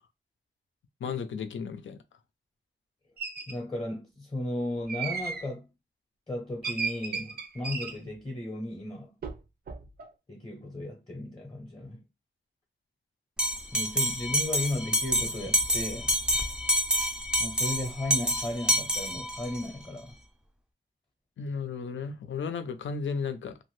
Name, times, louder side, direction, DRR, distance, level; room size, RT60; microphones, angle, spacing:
voice 1, 1.0-2.0 21.4-23.6, left 5 dB, 80° left, 0.5 m, -34 dB
sound 1, 3.2-3.5 4.9-5.5 6.6-8.0 9.2-9.4 9.7-10.1, right 5 dB, 55° right, 0.5 m, -35 dB
voice 2, 3.5-5.7 6.3-9.1 10.3-12.0 13.7-16.1 17.4-20.2, left 1 dB, 20° left, 0.7 m, -35 dB
Bell, 13.4-19.6, equal, 5° right, 0.4 m, -28 dB
2.6 x 2.5 x 3.1 m
wide cardioid pair, 150°, 20 cm